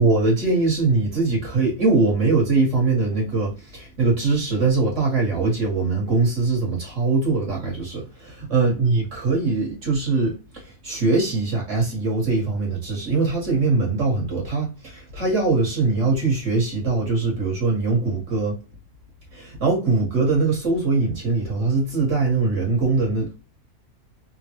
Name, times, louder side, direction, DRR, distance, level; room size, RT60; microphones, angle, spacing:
voice 1, 0.0-18.6 19.3-23.4, right 3 dB, 55° right, 1.8 m, -22 dB
3.5 x 2.3 x 2.9 m
omnidirectional pair, 1.5 m